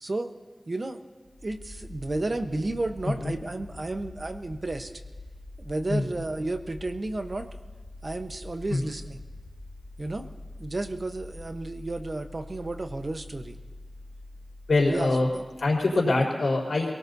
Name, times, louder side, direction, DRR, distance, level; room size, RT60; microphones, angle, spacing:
voice 1, 0.0-0.3 0.7-1.0 1.4-4.9 5.6-7.5 8.0-9.2 10.0-10.3 10.6-13.6 14.9-15.4, right 2 dB, 50° right, 6 dB, 1.0 m, -32 dB
sound 1, 1.3-16.0, left 2 dB, 55° left, 1.8 m, -45 dB
voice 2, 14.7-15.3 15.6-16.9, left 2 dB, 90° left, -3 dB, 4.1 m, -24 dB
26.5 x 18.5 x 2.8 m, 1.4 s
wide cardioid pair, 65°, 0 cm